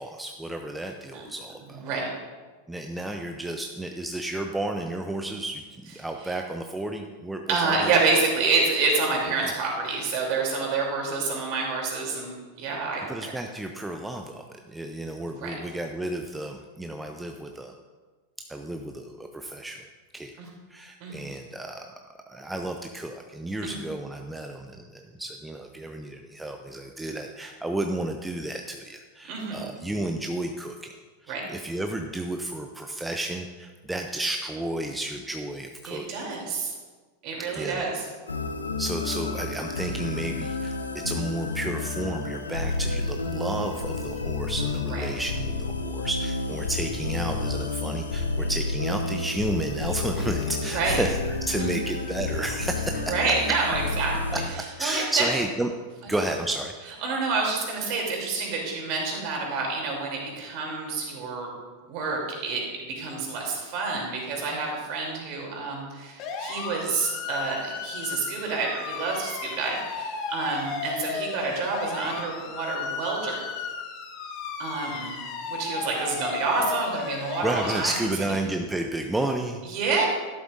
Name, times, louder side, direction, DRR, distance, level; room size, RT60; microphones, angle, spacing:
voice 1, 0.0-1.9 2.7-8.0 9.4-9.5 13.1-17.7 18.5-19.8 20.1-20.3 20.7-21.9 22.3-30.9 31.2-36.2 37.5-37.9 38.8-53.2 54.8-55.7 56.1-56.7 77.4-79.6, right 1 dB, 5° right, 4 dB, 0.6 m, -32 dB
voice 2, 7.5-13.0 15.4-15.5 20.4-20.5 21.0-21.2 23.6-23.8 29.3-29.7 31.3-31.4 35.8-36.7 37.2-38.0 44.9-45.0 50.6-51.0 51.6-51.7 53.1-54.4 54.8-55.3 57.0-61.5 61.9-73.4 74.6-75.2 75.5-78.1 79.7-80.1, right 4 dB, 45° right, -1 dB, 3.1 m, -28 dB
sound 1, 38.3-54.5, left 3 dB, 75° left, 0.8 m, -30 dB
sound 2, 66.2-78.1, left 4 dB, 40° left, 1.4 m, -34 dB
12.5 x 11.0 x 2.6 m, 1.4 s
figure-of-eight pair, 90°, 0 cm